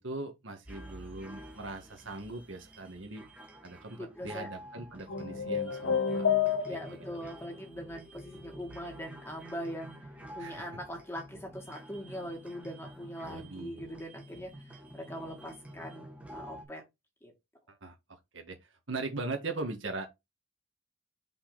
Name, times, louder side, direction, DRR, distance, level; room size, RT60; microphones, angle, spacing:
voice 1, 0.0-3.2 3.6-6.3 6.7-7.0 10.4-10.7 13.3-14.0 17.7-18.6 18.9-20.1, right 3 dB, 70° right, 1.6 m, -40 dB
sound 1, 0.6-16.7, equal, 5° right, 1.5 m, -49 dB
voice 2, 4.0-4.5 6.7-10.0 10.3-16.8 17.2-17.3, equal, 10° left, 1.9 m, -42 dB
sound 2, 5.1-7.1, left 7 dB, 85° left, 1.2 m, -29 dB
5.4 x 4.5 x 3.9 m
head